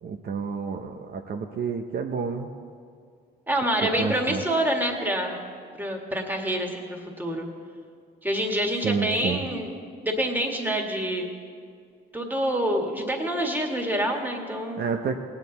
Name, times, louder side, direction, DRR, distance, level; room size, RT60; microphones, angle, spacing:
voice 1, 0.0-2.5 4.0-4.4 8.8-9.4 14.8-15.2, right 5 dB, 50° right, 4 dB, 0.7 m, -29 dB
voice 2, 3.5-5.4 5.8-7.5 8.2-9.8 10.0-11.3 12.1-14.8, right 1 dB, 10° right, 2 dB, 1.8 m, -27 dB
18.0 x 9.0 x 4.1 m, 2.2 s
cardioid pair, 90°, 20 cm